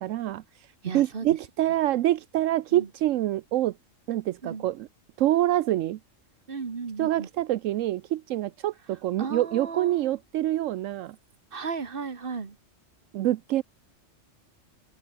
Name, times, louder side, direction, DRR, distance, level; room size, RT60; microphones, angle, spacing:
voice 1, 0.0-3.7 4.1-4.9 5.2-6.0 7.0-11.2 13.1-13.6, right 14 dB, 80° right, 1.0 m, -26 dB
voice 2, 0.8-1.3 2.7-2.9 4.4-4.6 6.5-7.3 9.2-10.1 11.5-12.6, right 5 dB, 45° right, 1.8 m, -35 dB
open air
omnidirectional pair, 1.3 m